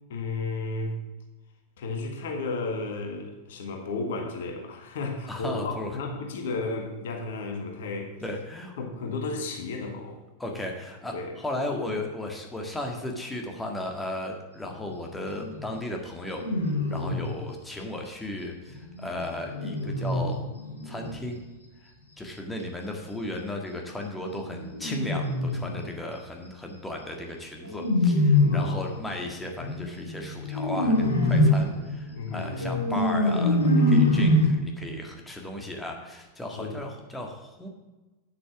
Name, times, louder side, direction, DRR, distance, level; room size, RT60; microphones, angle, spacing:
voice 1, 0.1-1.0 1.8-8.1 8.8-10.2 11.1-11.4 28.5-28.8 32.1-32.6 36.6-36.8, left 3 dB, 55° left, 3 dB, 1.7 m, -33 dB
voice 2, 5.3-6.0 8.2-8.8 10.4-20.4 20.8-21.4 21.8-21.9 22.2-37.7, left 1 dB, 10° left, 2 dB, 1.8 m, -35 dB
sound 1, 15.2-15.7 16.3-17.3 18.7-21.2 24.4-26.0 27.6-28.9 29.6-34.5, left 1 dB, 75° left, 2.9 m, -24 dB
8.8 x 8.4 x 6.1 m, 1.1 s
figure-of-eight pair, 90°, 0 cm